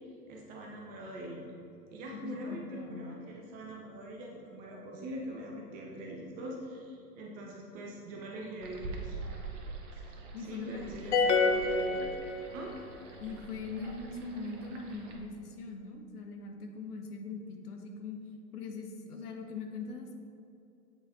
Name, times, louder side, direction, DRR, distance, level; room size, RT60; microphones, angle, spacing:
voice 1, 0.3-1.4 1.9-9.2 9.9-10.0 10.5-12.1 12.5-12.7, right 1 dB, 20° right, -2 dB, 0.6 m, -43 dB
voice 2, 2.2-3.1 10.3-11.3 13.2-18.2 18.5-20.1, left 4 dB, 75° left, 3 dB, 1.1 m, -41 dB
sound 1, 8.6-15.2, right 3 dB, 50° right, 1.0 m, -45 dB
sound 2, 11.1-12.8, left 4 dB, 50° left, 0.6 m, -27 dB
7.8 x 4.2 x 3.7 m, 2.8 s
hypercardioid pair, 130°, 46 cm